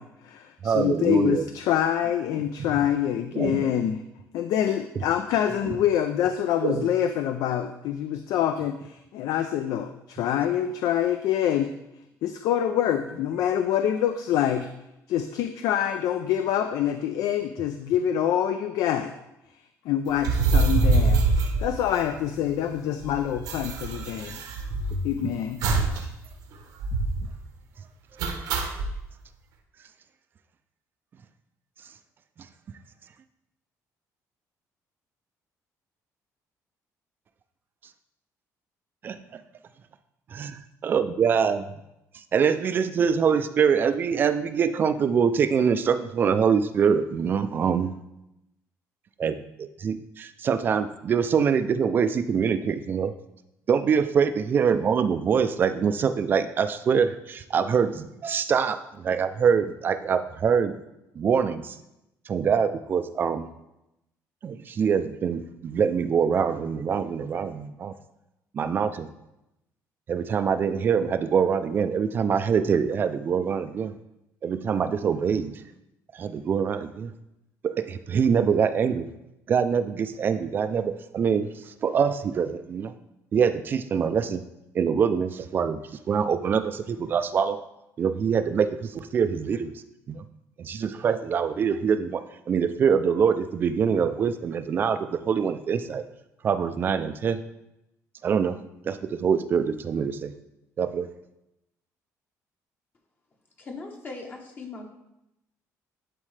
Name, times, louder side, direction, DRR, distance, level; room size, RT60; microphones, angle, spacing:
voice 1, 0.0-4.0 4.3-11.7 12.2-14.7 15.1-19.1 19.9-24.4 25.0-25.6, left 10 dB, 75° left, 8 dB, 0.4 m, -26 dB
voice 2, 0.6-1.4 3.3-3.7 5.6-5.8 6.6-6.9 25.2-25.3 27.2-27.3 39.0-39.2 40.3-41.6 42.3-47.9 49.2-53.1 53.7-60.7 61.2-61.8 62.3-63.5 64.4-67.9 68.5-69.1 70.1-73.9 74.4-75.5 76.1-77.1 77.6-79.1 79.5-81.5 81.8-82.9 83.3-84.4 84.7-85.8 86.1-87.6 88.0-89.7 90.1-90.2 90.6-96.0 96.4-97.4 98.2-98.6 98.9-100.3 100.8-101.1, right 6 dB, 35° right, 11 dB, 0.3 m, -24 dB
sound 1, 20.2-22.4 22.7-22.8 23.0-25.1 25.6-26.0 26.3-26.4 26.8-27.3 28.2-28.9, right 3 dB, 85° right, 1.0 m, -24 dB
voice 3, 103.6-104.9, left 3 dB, 30° left, 1 dB, 0.9 m, -39 dB
11.0 x 4.3 x 3.2 m, 0.89 s
cardioid pair, 170°, 6 cm